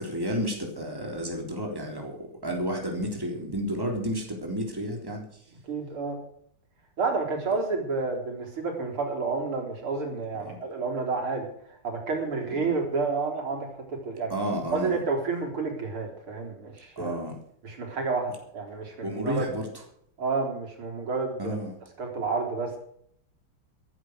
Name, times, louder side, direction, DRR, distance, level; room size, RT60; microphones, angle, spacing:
voice 1, 0.0-5.2 10.4-10.6 12.6-12.8 14.3-15.0 17.0-17.4 19.0-19.7 21.4-21.8, equal, 10° right, 1 dB, 3.5 m, -31 dB
voice 2, 5.6-6.2 7.0-14.3 14.7-17.2 17.6-19.5 20.2-21.6 22.0-22.7, right 4 dB, 80° right, 2 dB, 4.6 m, -30 dB
14.5 x 12.0 x 6.2 m, 0.67 s
omnidirectional pair, 2.4 m